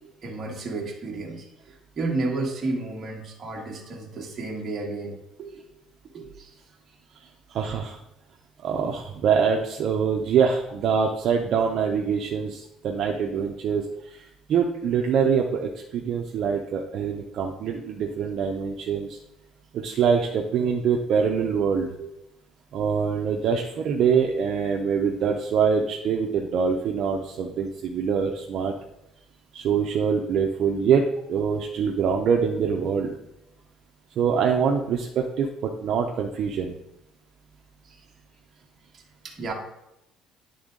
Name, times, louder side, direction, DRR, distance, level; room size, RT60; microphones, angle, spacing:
voice 1, 0.0-5.6 6.1-6.5 22.0-22.1 37.9-38.0 38.9-39.5, right 3 dB, 25° right, -2 dB, 1.4 m, -32 dB
voice 2, 7.5-8.0 8.6-19.2 19.7-21.9 22.7-28.7 29.5-31.0 31.3-33.1 34.2-36.7, right 6 dB, 45° right, 0 dB, 0.6 m, -24 dB
10.5 x 3.6 x 3.8 m, 0.87 s
cardioid pair, 175°, 0 cm